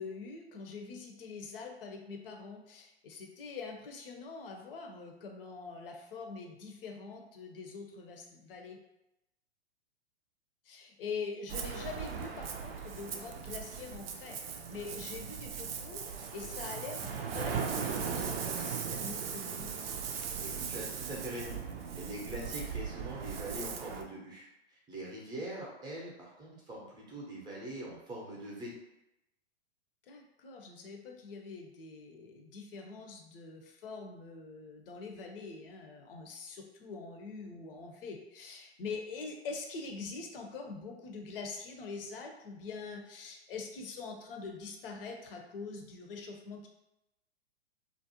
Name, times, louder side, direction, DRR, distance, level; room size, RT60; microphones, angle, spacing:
voice 1, 0.0-8.8 10.6-16.0 16.3-19.8 30.1-46.7, left 4 dB, 55° left, 2 dB, 0.6 m, -44 dB
Ocean, 11.5-24.0, right 6 dB, 65° right, 0.4 m, -38 dB
voice 2, 20.4-21.6 21.9-28.7, right 1 dB, 15° right, -4 dB, 0.6 m, -43 dB
2.4 x 2.1 x 2.8 m, 0.91 s
figure-of-eight pair, 110°, 33 cm